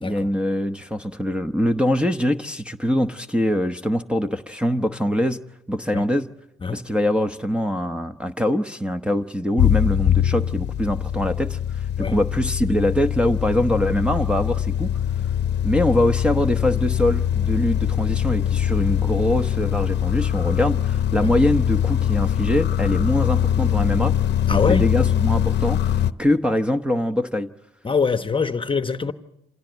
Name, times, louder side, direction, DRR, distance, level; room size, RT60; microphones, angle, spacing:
voice 1, 0.0-5.4 5.7-6.3 6.7-14.9 15.6-24.1 24.5-27.5, equal, 5° right, 0.9 m, -23 dB
voice 2, 6.6-6.9 12.0-12.2 21.2-21.3 24.5-24.9 27.8-29.1, left 5 dB, 25° left, 1.0 m, -24 dB
sound 1, 9.6-26.1, left 10 dB, 60° left, 0.8 m, -22 dB
27.0 x 17.0 x 8.1 m
cardioid pair, 90°, 20 cm